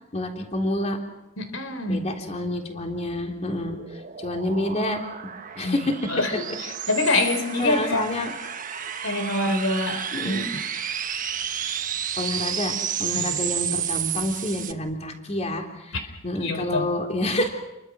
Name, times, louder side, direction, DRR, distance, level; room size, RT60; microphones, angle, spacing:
voice 1, 0.1-1.0 1.9-3.8 4.2-5.0 5.6-5.9 7.1-7.2 7.6-8.3 10.1-10.5 12.2-16.0 16.2-17.5, left 1 dB, 35° left, 2 dB, 3.5 m, -28 dB
voice 2, 1.4-2.1 5.6-8.0 9.0-10.4 13.1-13.4 16.4-16.9, left 2 dB, 90° left, 8 dB, 3.9 m, -26 dB
sound 1, 3.2-14.7, right 9 dB, 40° right, 1.3 m, -31 dB
30.0 x 23.5 x 6.3 m, 0.93 s
head